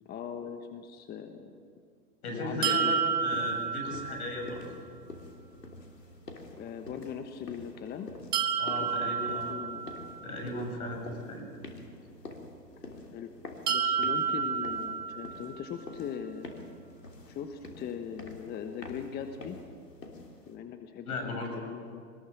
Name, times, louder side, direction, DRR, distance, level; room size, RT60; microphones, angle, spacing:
voice 1, 0.1-1.6 2.3-3.1 6.6-8.1 8.8-9.9 13.1-13.4 13.7-16.5 17.3-19.6 20.5-22.0, left 7 dB, 20° left, 6 dB, 1.2 m, -40 dB
voice 2, 2.2-4.6 8.6-9.5 10.2-11.5 21.0-21.5, left 1 dB, 65° left, 3 dB, 7.8 m, -36 dB
sound 1, 2.6-4.6 8.3-10.4 13.7-15.7, right 7 dB, 70° right, 1.6 m, -30 dB
sound 2, 3.3-20.6, left 2 dB, 90° left, 3.2 m, -47 dB
25.0 x 20.0 x 7.6 m, 2.2 s
hypercardioid pair, 115°, 47 cm